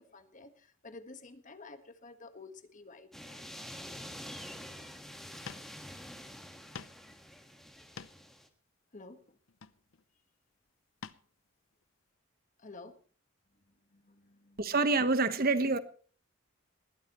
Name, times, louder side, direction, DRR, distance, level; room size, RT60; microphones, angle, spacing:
voice 1, 0.0-3.4 8.9-9.4 12.6-13.0 13.6-14.7, left 3 dB, 40° left, 1.5 m, -52 dB
sound 1, 3.1-8.5, equal, ahead, 1.6 m, -47 dB
sound 2, 5.4-5.7 6.1-6.2 6.7-7.0 7.7-8.3 9.5-10.0 11.0-11.3 11.7-11.8, left 6 dB, 70° left, 0.7 m, -47 dB
voice 2, 14.6-15.8, right 3 dB, 45° right, 1.2 m, -27 dB
20.0 x 14.5 x 3.1 m
head